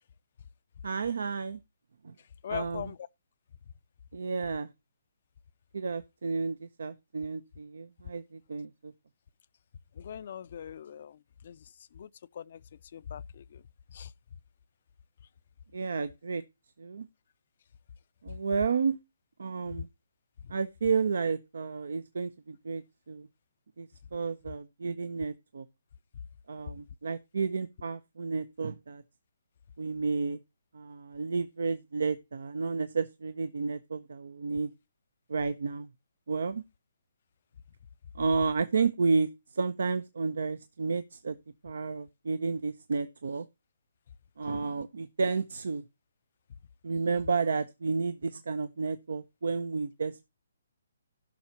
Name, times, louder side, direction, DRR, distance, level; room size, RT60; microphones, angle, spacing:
voice 1, 0.8-1.6 2.0-2.1 2.5-2.9 4.1-4.7 5.7-8.9 15.7-16.4 16.8-17.0 18.2-19.0 19.4-19.9 20.5-23.3 23.8-25.7 26.5-29.0 29.8-30.4 30.7-34.7 35.3-35.9 36.3-36.6 38.1-41.4 41.6-43.4 44.4-45.8 46.8-50.2, right 4 dB, 75° right, 0.7 m, -31 dB
voice 2, 2.4-3.0 10.0-11.2 11.4-11.6 11.9-12.1 12.3-12.6 12.9-13.6 13.9-14.1, left 9 dB, 50° left, 0.5 m, -40 dB
16.5 x 5.9 x 2.8 m
hypercardioid pair, 150°, 0 cm